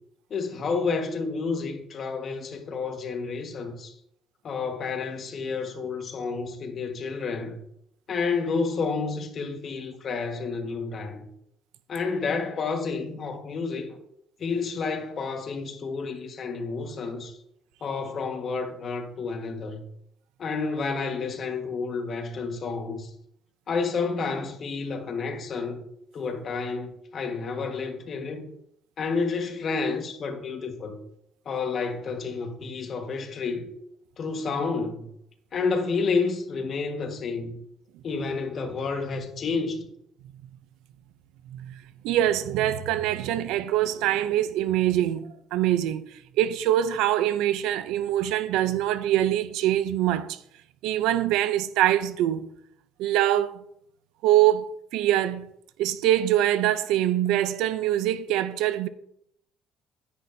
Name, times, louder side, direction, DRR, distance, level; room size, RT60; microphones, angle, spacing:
voice 1, 0.3-3.9 4.4-7.6 8.1-11.3 11.9-14.0 14.4-17.4 17.8-19.8 20.4-23.1 23.7-25.9 26.1-28.5 29.0-31.0 31.4-33.7 34.2-35.1 35.5-37.6 38.0-39.8, left 4 dB, 40° left, 1.5 m, -30 dB
voice 2, 42.0-46.1 46.4-50.4 50.8-52.5 53.0-53.6 54.2-55.5 55.8-58.9, right 12 dB, 90° right, 0.5 m, -24 dB
10.0 x 10.0 x 2.7 m
cardioid pair, 135°, 0 cm